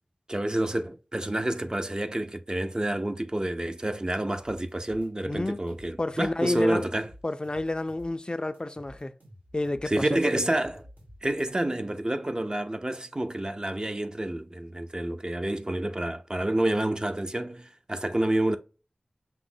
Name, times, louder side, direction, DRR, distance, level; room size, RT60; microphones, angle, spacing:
voice 1, 0.3-7.1 9.9-10.8 11.2-18.6, right 1 dB, 30° right, 0.4 m, -28 dB
sound 1, 4.4-6.5 6.8-8.3 8.5-11.5, equal, 75° right, 1.8 m, -51 dB
voice 2, 5.3-5.6 6.0-6.9 7.2-9.1 9.5-10.1, left 2 dB, 30° left, 0.3 m, -29 dB
5.8 x 2.1 x 3.7 m
wide cardioid pair, 55°, 3 cm